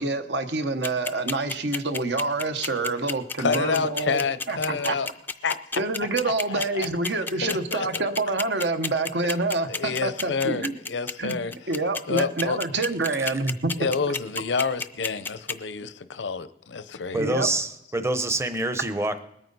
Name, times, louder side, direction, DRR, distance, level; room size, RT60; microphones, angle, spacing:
voice 1, 0.0-4.2 4.5-5.0 5.8-10.8 11.2-13.7 17.2-17.5, right 3 dB, 70° right, 8 dB, 1.1 m, -27 dB
sound 1, 0.8-15.5, left 4 dB, 10° left, 0.4 m, -30 dB
voice 2, 3.4-5.1 5.4-5.6 6.2-6.9 7.4-8.0 9.7-11.5 12.1-12.6 13.8-17.2, left 5 dB, 85° left, 13 dB, 0.7 m, -28 dB
voice 3, 17.1-19.2, right 2 dB, 15° right, 10 dB, 0.7 m, -26 dB
20.5 x 9.0 x 4.1 m, 0.81 s
head